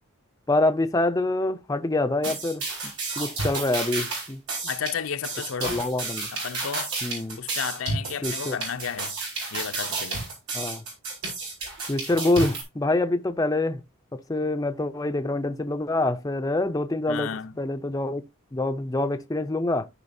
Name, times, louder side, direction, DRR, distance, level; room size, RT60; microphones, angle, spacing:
voice 1, 0.5-4.4 5.6-6.3 7.0-7.4 8.2-8.6 10.5-10.8 11.9-13.8 14.1-17.3 17.6-18.2 18.5-19.9, left 2 dB, 15° left, 0.4 m, -26 dB
sound 1, 2.2-12.6, right 3 dB, 90° right, 5.0 m, -31 dB
voice 2, 4.7-5.8 6.3-6.9 7.4-9.1 9.5-10.2 17.1-17.5, left 7 dB, 65° left, 0.5 m, -32 dB
14.0 x 4.8 x 2.6 m
head